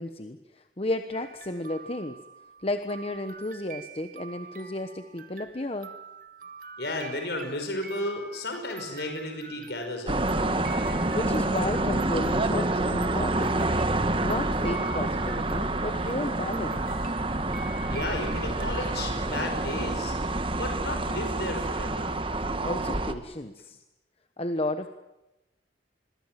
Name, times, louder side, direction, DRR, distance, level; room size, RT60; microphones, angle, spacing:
voice 1, 0.0-2.2 2.6-5.9 11.1-13.7 14.2-16.9 22.6-23.8 24.4-24.9, left 1 dB, 35° left, 8 dB, 1.1 m, -33 dB
sound 1, 1.1-16.1 16.5-20.0, right 5 dB, 50° right, 1.9 m, -47 dB
voice 2, 6.8-10.7 17.9-20.1 20.6-22.2, left 1 dB, 65° left, 4 dB, 5.4 m, -34 dB
sound 2, 10.1-23.1, right 2 dB, 30° right, 1.5 m, -28 dB
27.0 x 22.0 x 7.6 m, 0.98 s
head